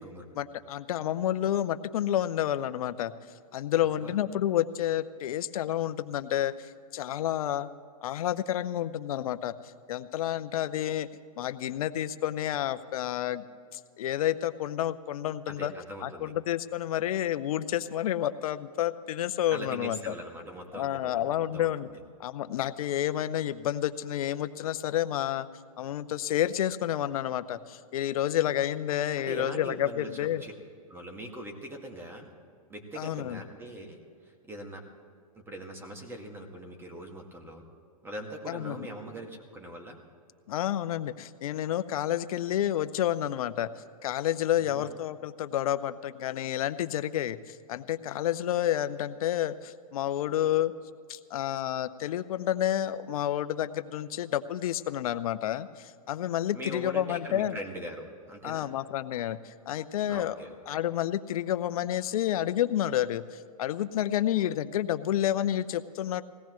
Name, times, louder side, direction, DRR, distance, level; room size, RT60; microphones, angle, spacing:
voice 1, 0.3-3.1 3.5-7.7 8.0-11.1 11.4-13.4 13.7-15.7 16.0-20.1 20.7-21.9 22.2-25.5 25.8-30.4 33.0-33.4 38.5-38.9 40.5-43.7 44.0-50.7 51.1-57.6 58.4-60.4 60.7-66.2, left 11 dB, 65° left, 13 dB, 0.7 m, -30 dB
voice 2, 15.5-16.3 19.5-22.0 29.2-30.5 30.9-32.3 32.7-34.0 34.4-34.8 35.4-37.6 38.0-40.0 44.6-44.9 56.5-58.7 60.1-60.6, right 1 dB, 10° right, 2 dB, 2.0 m, -41 dB
21.0 x 17.5 x 3.1 m, 2.3 s
hypercardioid pair, 130°, 20 cm